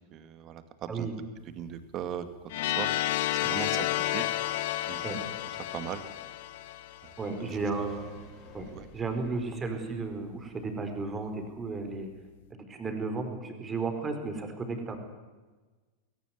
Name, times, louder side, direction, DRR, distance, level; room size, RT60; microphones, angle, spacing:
voice 1, 0.1-1.1 1.5-2.3 2.6-2.9 3.3-4.3 4.9-5.2 5.7-6.0 7.0-7.1 7.5-7.6 8.7-8.9, right 9 dB, 35° right, 10 dB, 2.2 m, -38 dB
sound 1, 2.5-7.3, left 15 dB, 55° left, 1.0 m, -31 dB
voice 2, 7.2-8.0 8.5-8.7 8.9-12.1 12.5-15.0, right 3 dB, 20° right, 5 dB, 4.6 m, -34 dB
sound 2, 7.5-11.1 11.4-11.5, left 2 dB, 25° left, 7.9 m, -51 dB
21.5 x 18.5 x 9.7 m, 1.3 s
figure-of-eight pair, 90°, 0 cm